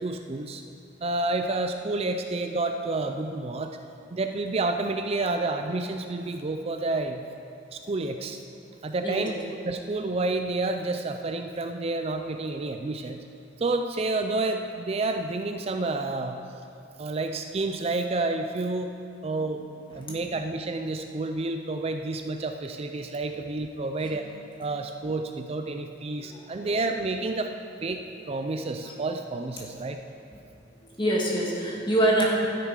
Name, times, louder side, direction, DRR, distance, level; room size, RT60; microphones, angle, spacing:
voice 1, 0.0-0.6 1.0-3.8 4.1-7.2 7.7-8.4 8.8-9.4 9.6-13.2 13.6-16.4 17.0-18.9 19.2-19.6 19.9-24.3 24.6-27.5 27.8-28.0 28.3-30.0, right 2 dB, 35° right, 6 dB, 0.4 m, -29 dB
voice 2, 26.2-26.8 28.9-29.0 30.8-32.2, right 1 dB, 25° left, -3 dB, 1.9 m, -26 dB
12.5 x 9.8 x 5.0 m, 2.6 s
head